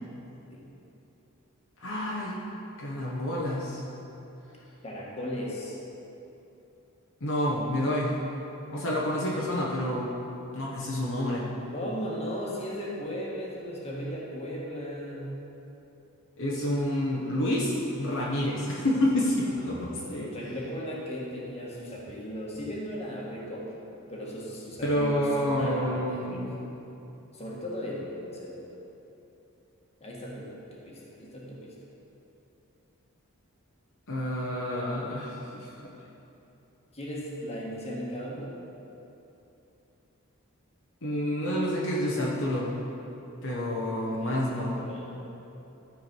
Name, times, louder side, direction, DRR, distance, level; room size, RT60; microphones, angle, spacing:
voice 1, 1.8-2.4 2.8-3.8 7.2-8.2 8.7-10.1 10.5-11.5 16.4-17.7 18.0-20.3 24.8-26.6 34.1-35.7 41.0-42.7 43.4-44.8, left 1 dB, 60° left, -4 dB, 1.1 m, -28 dB
voice 2, 4.8-5.8 11.7-15.4 19.3-23.7 24.1-26.6 27.3-28.7 30.0-31.7 36.9-38.5 44.2-45.2, equal, 30° left, -4 dB, 1.6 m, -37 dB
12.0 x 4.7 x 5.3 m, 2.9 s
head